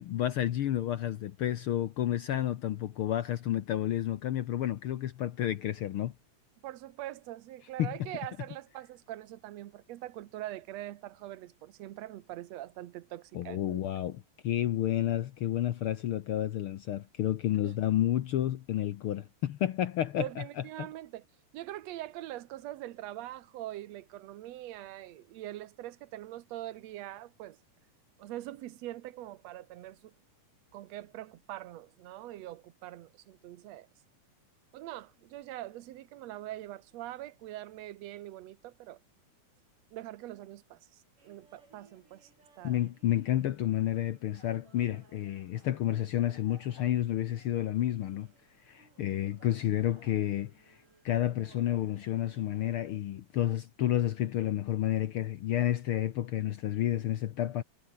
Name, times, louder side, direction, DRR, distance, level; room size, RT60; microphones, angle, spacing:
voice 1, 0.0-6.1 7.8-7.9 13.3-20.4 20.8-20.9 42.6-48.3 48.7-50.8 51.0-57.6, left 12 dB, 80° left, 1.2 m, -30 dB
voice 2, 6.6-13.8 17.6-17.8 20.2-21.3 21.5-27.6 28.2-30.1 30.7-33.9 34.7-39.0 39.9-42.3 42.6-42.8, right 14 dB, 65° right, 2.0 m, -43 dB
sound 1, 41.2-53.0, right 3 dB, 80° right, 9.6 m, -63 dB
omnidirectional pair, 3.6 m